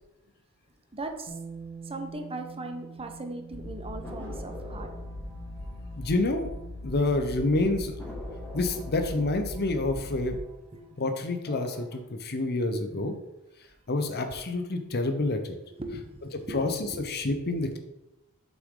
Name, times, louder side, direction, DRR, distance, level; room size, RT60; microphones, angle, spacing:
voice 1, 0.9-1.4 1.8-4.9 10.7-10.9 15.7-16.6 16.9-17.0, right 2 dB, 25° right, 5 dB, 0.9 m, -38 dB
Bass guitar, 1.3-7.5, right 5 dB, 55° right, 1.3 m, -47 dB
sound 1, 3.5-10.4, left 1 dB, 90° left, 1.3 m, -40 dB
sound 2, 4.0-7.1 7.4-7.5 8.0-10.9 11.3-12.0, left 1 dB, 10° left, 1.9 m, -47 dB
voice 2, 6.0-6.5 6.8-8.0 8.5-10.4 11.0-13.2 13.9-15.5 16.5-16.7 17.0-17.8, left 2 dB, 45° left, 6 dB, 0.8 m, -28 dB
7.6 x 6.1 x 3.8 m, 0.91 s
head